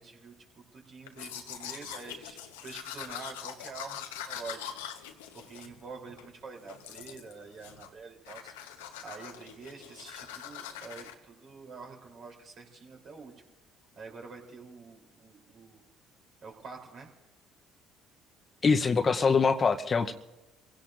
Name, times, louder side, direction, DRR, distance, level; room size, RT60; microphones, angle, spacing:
voice 1, 0.0-4.7 5.3-8.5 9.0-13.3 14.0-15.8 16.4-17.1, right 4 dB, 55° right, 1 dB, 3.4 m, -47 dB
Domestic sounds home sounds, 1.1-6.3 6.7-7.3 7.6-8.0 8.2-11.1, left 9 dB, 85° left, 1.0 m, -43 dB
voice 2, 18.6-20.1, left 5 dB, 35° left, 8 dB, 0.9 m, -24 dB
28.0 x 17.0 x 2.6 m, 1.1 s
hypercardioid pair, 60°, 0 cm